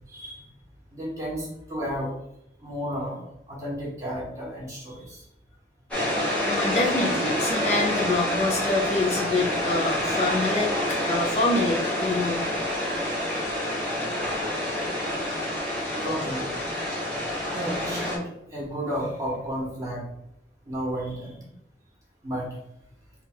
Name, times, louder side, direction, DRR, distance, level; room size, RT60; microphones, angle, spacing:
voice 1, 0.1-0.4 0.9-2.1 2.6-5.2 16.0-16.5 17.5-18.2 18.5-20.0 20.6-21.4 22.2-22.5, equal, 20° right, -4 dB, 1.4 m, -32 dB
sound 1, 5.9-18.2, left 1 dB, 5° left, 1.2 m, -27 dB
voice 2, 6.4-12.5, left 2 dB, 40° left, -2 dB, 0.6 m, -26 dB
3.4 x 2.4 x 4.4 m, 0.79 s
head